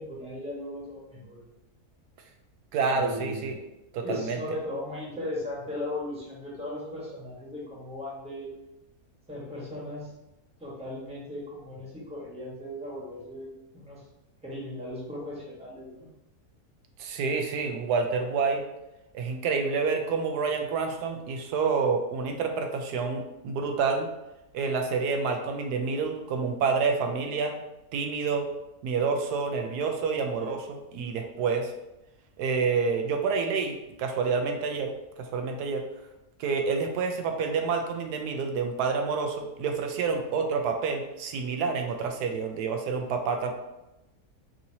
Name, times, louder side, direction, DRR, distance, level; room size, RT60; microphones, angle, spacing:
voice 1, 0.0-1.5 2.9-3.5 4.0-8.6 9.3-10.1 10.6-14.0 14.4-16.1, left 1 dB, 5° right, -5 dB, 1.0 m, -37 dB
voice 2, 2.7-3.6 3.9-4.4 17.0-18.6 19.1-24.1 24.5-27.6 27.9-28.5 28.8-31.7 32.4-34.9 35.2-35.8 36.4-43.5, right 5 dB, 85° right, 4 dB, 1.2 m, -28 dB
5.6 x 2.8 x 2.7 m, 0.94 s
omnidirectional pair, 1.7 m